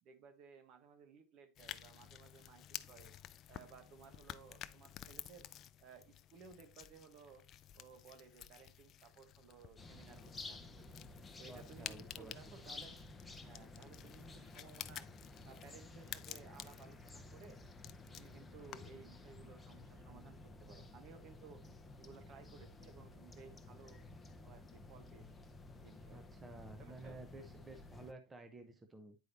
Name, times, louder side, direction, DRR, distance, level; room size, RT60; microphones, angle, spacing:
voice 1, 0.0-3.1 3.5-5.5 5.8-7.5 7.7-10.9 11.4-13.0 13.4-15.1 15.4-17.6 18.1-21.6 22.0-24.0 24.4-25.5 25.8-26.3 26.8-27.2, right 6 dB, 50° right, 1.2 m, -59 dB
sound 1, 1.6-19.1, left 11 dB, 40° left, 0.4 m, -52 dB
sound 2, 9.8-28.1, left 3 dB, 15° left, 0.7 m, -54 dB
voice 2, 11.5-12.3 21.7-21.8 26.1-29.2, right 2 dB, 15° right, 0.8 m, -53 dB
9.3 x 4.7 x 2.8 m
supercardioid pair, 110°, 0 cm